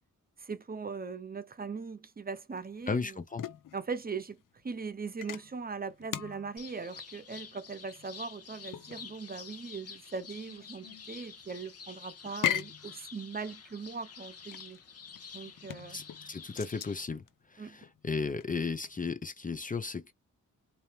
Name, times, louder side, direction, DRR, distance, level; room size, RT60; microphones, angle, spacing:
voice 1, 0.4-3.2 3.7-14.8 15.3-16.0 17.6-17.8, right 5 dB, 30° right, 0.8 m, -40 dB
sound 1, 2.5-19.1, left 10 dB, 90° left, 0.7 m, -41 dB
voice 2, 2.9-3.4 15.9-17.2 17.5-20.1, left 4 dB, 25° left, 0.6 m, -35 dB
sound 2, 6.6-17.1, left 6 dB, 50° left, 1.0 m, -49 dB
4.4 x 2.8 x 3.3 m
wide cardioid pair, 150°, 31 cm